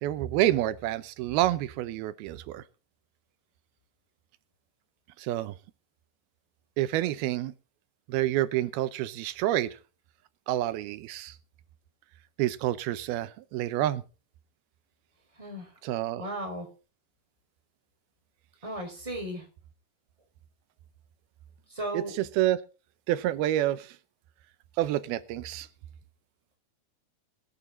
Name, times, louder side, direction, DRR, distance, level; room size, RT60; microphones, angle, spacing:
voice 1, 0.0-2.6 5.2-5.5 6.8-7.5 8.1-9.8 10.5-11.4 12.4-14.0 15.8-16.2 21.9-22.6 23.1-24.0 24.8-25.7, right 14 dB, 90° right, 14 dB, 2.8 m, -28 dB
voice 2, 16.2-16.7 18.6-19.4 21.7-22.1, right 1 dB, 10° right, 2 dB, 4.1 m, -35 dB
21.5 x 8.9 x 3.8 m, 0.34 s
omnidirectional pair, 4.3 m